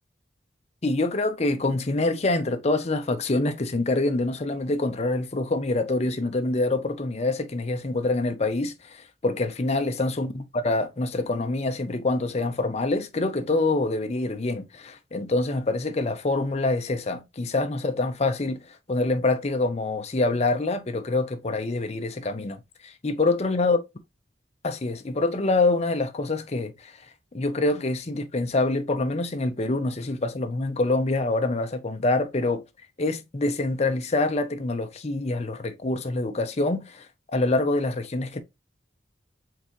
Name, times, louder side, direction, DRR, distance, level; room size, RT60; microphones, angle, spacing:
voice 1, 0.8-10.3 10.6-23.8 24.6-26.9 27.3-32.6 33.0-37.1 37.3-38.4, left 2 dB, 35° left, 0.6 m, -26 dB
4.7 x 3.4 x 3.0 m
head